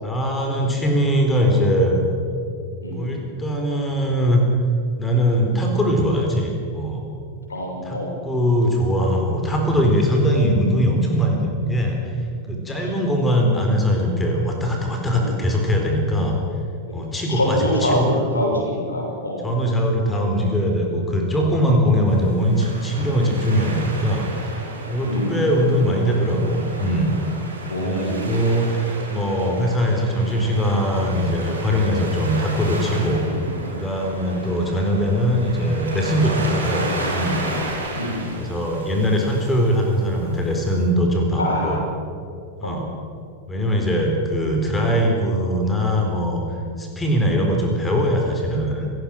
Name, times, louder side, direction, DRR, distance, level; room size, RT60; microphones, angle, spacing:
voice 1, 0.0-2.1 2.9-4.4 5.0-7.0 7.8-12.2 12.4-16.4 16.9-18.1 19.4-27.1 27.8-33.3 33.7-37.4 38.4-41.8 42.6-42.9 43.5-48.9, equal, 15° left, 1 dB, 4.2 m, -21 dB
voice 2, 2.8-3.1 7.5-8.2 15.1-15.3 17.3-19.5 25.0-25.4 27.7-28.4 29.4-29.5 33.2-33.4 34.3-34.5 37.9-38.3 41.4-41.9 42.6-42.8 44.8-44.9 47.2-47.3, equal, 75° left, -1 dB, 6.4 m, -25 dB
Waves surf, 22.1-40.9, right 1 dB, 75° right, 4.8 m, -33 dB
29.0 x 15.5 x 6.4 m, 2.5 s
figure-of-eight pair, 90°, 0 cm